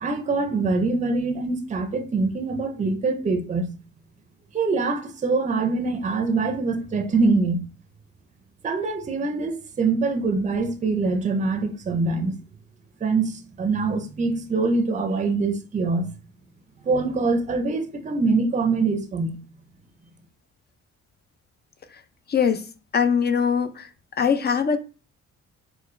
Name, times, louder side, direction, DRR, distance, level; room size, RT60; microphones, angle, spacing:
voice 1, 0.0-3.8 4.5-7.6 8.6-12.4 13.0-16.1 16.8-19.4, right 3 dB, 25° right, 0.5 m, -24 dB
voice 2, 22.3-22.6 22.9-23.7 24.2-24.8, left 6 dB, 35° left, 0.4 m, -21 dB
4.3 x 2.2 x 3.1 m
cardioid pair, 90°, 30 cm